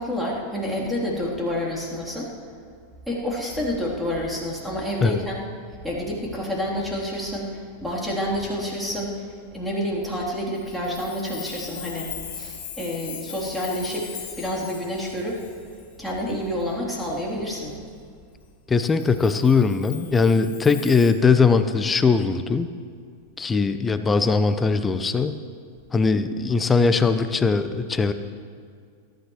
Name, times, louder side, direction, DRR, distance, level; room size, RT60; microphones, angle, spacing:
voice 1, 0.0-2.3 3.1-5.4 5.8-15.4 16.0-17.7, equal, ahead, -5 dB, 3.4 m, -29 dB
Chime, 10.5-16.6 17.1-17.2 18.8-21.1, left 9 dB, 50° left, 2.5 m, -40 dB
voice 2, 18.7-22.7 23.4-25.4 25.9-28.1, left 4 dB, 15° left, 11 dB, 0.7 m, -20 dB
22.0 x 12.5 x 3.2 m, 2.2 s
figure-of-eight pair, 90°, 0 cm